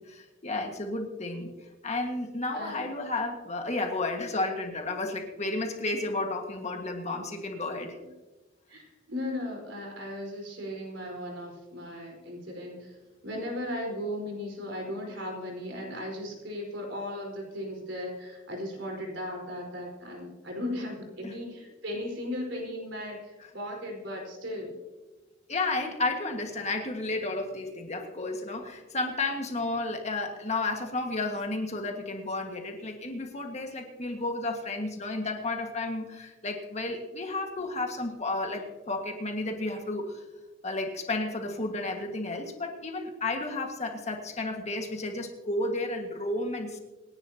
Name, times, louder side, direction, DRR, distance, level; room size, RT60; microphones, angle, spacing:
voice 1, 0.0-1.5 1.8-7.9 21.2-21.3 25.5-40.2 40.6-46.8, left 2 dB, 35° left, 3 dB, 1.8 m, -32 dB
voice 2, 8.7-13.0 13.2-24.8, left 1 dB, 70° right, 1 dB, 4.7 m, -36 dB
26.5 x 11.0 x 2.9 m, 1.2 s
head